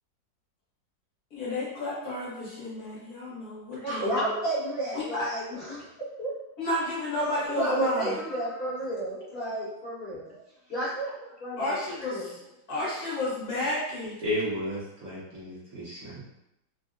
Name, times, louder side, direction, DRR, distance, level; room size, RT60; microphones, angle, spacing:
voice 1, 1.3-4.2 4.9-5.3 6.6-8.1 11.6-12.4 12.7-14.2, left 1 dB, 55° left, -8 dB, 1.4 m, -31 dB
voice 2, 3.8-5.8 6.2-6.3 7.5-10.4 10.7-11.1 11.4-11.7 12.1-12.3, right 1 dB, 40° left, -10 dB, 1.2 m, -31 dB
voice 3, 14.2-16.2, equal, 60° right, -9 dB, 1.1 m, -33 dB
3.5 x 2.1 x 2.4 m, 0.84 s
omnidirectional pair, 2.0 m